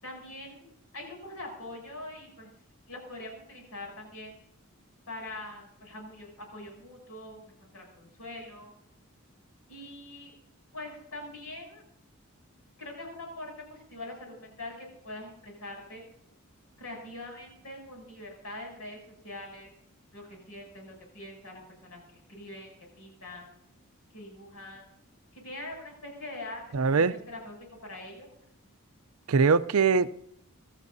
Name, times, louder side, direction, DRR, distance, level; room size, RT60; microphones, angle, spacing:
voice 1, 0.0-2.5 2.9-4.4 5.1-8.7 9.7-10.3 10.7-11.8 12.8-16.0 16.8-19.7 20.1-23.5 24.1-24.9 25.3-27.6 27.8-28.3, left 1 dB, 75° left, 0 dB, 7.6 m, -43 dB
voice 2, 26.7-27.1 29.3-30.1, right 5 dB, 75° right, 14 dB, 0.6 m, -22 dB
25.5 x 13.5 x 2.7 m, 0.73 s
head